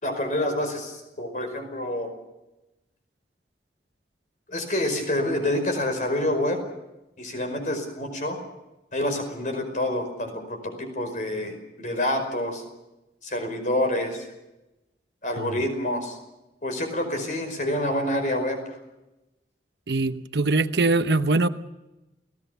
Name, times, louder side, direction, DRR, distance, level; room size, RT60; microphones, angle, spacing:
voice 1, 0.0-2.1 4.5-6.6 7.2-8.4 8.9-12.6 13.2-14.2 15.2-16.2 16.6-18.8, left 1 dB, 45° left, 6 dB, 5.1 m, -27 dB
voice 2, 19.9-21.5, right 3 dB, 75° right, 10 dB, 0.9 m, -22 dB
29.5 x 17.0 x 6.9 m, 0.98 s
head